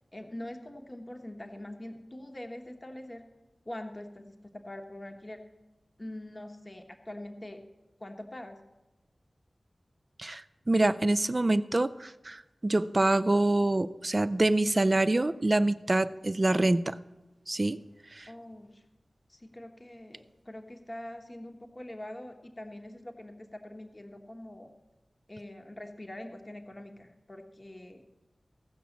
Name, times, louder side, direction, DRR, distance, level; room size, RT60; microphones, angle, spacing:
voice 1, 0.1-3.2 3.6-5.4 6.0-7.6 8.0-8.6 18.3-18.8 19.3-24.7 25.3-28.0, left 1 dB, 30° left, 4 dB, 1.2 m, -44 dB
voice 2, 10.2-17.0 17.5-17.8 18.1-18.3, right 2 dB, 35° right, 13 dB, 0.4 m, -26 dB
16.0 x 6.2 x 7.2 m, 1.1 s
wide cardioid pair, 70°, 0 cm